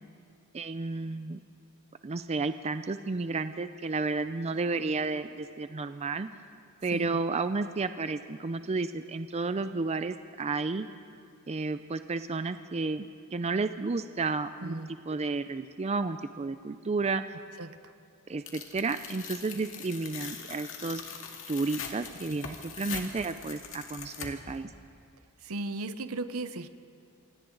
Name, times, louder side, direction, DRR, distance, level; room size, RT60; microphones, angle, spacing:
voice 1, 0.5-1.4 2.0-6.3 6.8-10.9 11.5-14.8 15.1-17.4 18.3-21.0 21.5-24.7, right 3 dB, 30° right, 11 dB, 0.5 m, -32 dB
voice 2, 14.6-14.9 17.6-17.9 22.3-22.4 25.4-26.7, right 2 dB, 70° right, 11 dB, 0.9 m, -36 dB
Tearing, 18.5-24.6, left 6 dB, 65° left, 2.1 m, -42 dB
27.5 x 25.5 x 3.9 m, 2.4 s
head